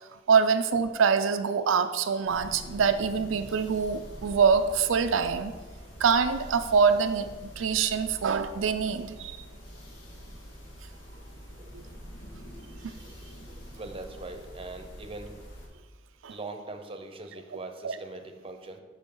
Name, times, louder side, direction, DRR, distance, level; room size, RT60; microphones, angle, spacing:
voice 1, 0.3-5.5 6.0-7.3 7.6-9.4 11.7-11.8 16.2-16.3 17.8-17.9, right 6 dB, 85° right, 9 dB, 0.4 m, -24 dB
sound 1, 2.2-15.7, equal, 75° left, 1.7 m, -45 dB
voice 2, 11.6-12.0 13.0-13.1 13.4-15.4 16.3-18.8, right 2 dB, 30° right, 6 dB, 0.7 m, -42 dB
8.8 x 6.1 x 3.8 m, 1.3 s
head